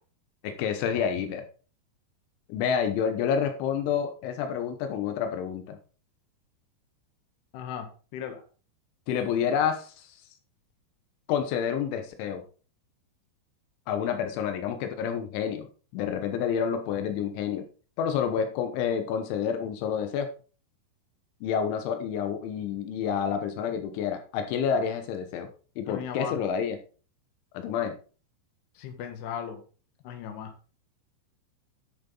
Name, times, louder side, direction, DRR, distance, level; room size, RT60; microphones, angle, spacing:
voice 1, 0.4-1.4 2.5-5.8 9.1-10.1 11.3-12.4 13.9-17.7 18.0-20.3 21.4-25.5 25.8-26.8 27.6-28.0, left 7 dB, 90° left, 7 dB, 3.5 m, -29 dB
voice 2, 7.5-7.9 8.1-8.4 25.9-26.4 28.8-29.6 30.0-30.5, left 8 dB, 70° left, 5 dB, 3.5 m, -36 dB
12.0 x 6.8 x 3.9 m, 0.37 s
omnidirectional pair, 5.3 m